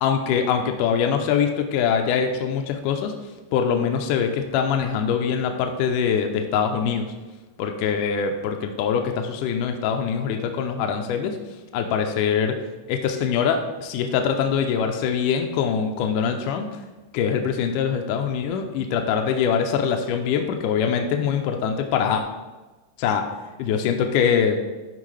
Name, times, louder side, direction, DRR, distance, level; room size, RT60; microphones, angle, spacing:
voice 1, 0.0-3.1 3.5-7.1 7.6-11.4 11.7-12.6 12.9-16.7 17.1-22.2 23.0-23.3 23.6-24.6, left 7 dB, 80° left, 4 dB, 2.1 m, -23 dB
12.0 x 4.5 x 3.3 m, 1.2 s
omnidirectional pair, 3.9 m